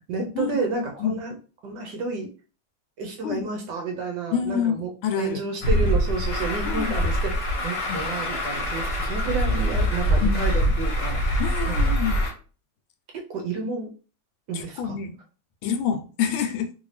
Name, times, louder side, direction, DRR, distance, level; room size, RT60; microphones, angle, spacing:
voice 1, 0.1-1.4 1.6-2.3 3.0-4.9 5.2-11.2 11.7-11.9 13.3-13.9 14.5-15.0, right 3 dB, 70° right, 2 dB, 1.1 m, -30 dB
voice 2, 4.3-5.4 6.6-6.9 7.9-8.0 10.2-10.5 11.4-12.2 14.5-15.1 15.6-16.7, left 8 dB, 80° left, 5 dB, 1.4 m, -27 dB
Truck, 5.6-12.3, equal, 55° left, 1.2 m, -24 dB
3.3 x 2.6 x 3.1 m, 0.37 s
omnidirectional pair, 2.3 m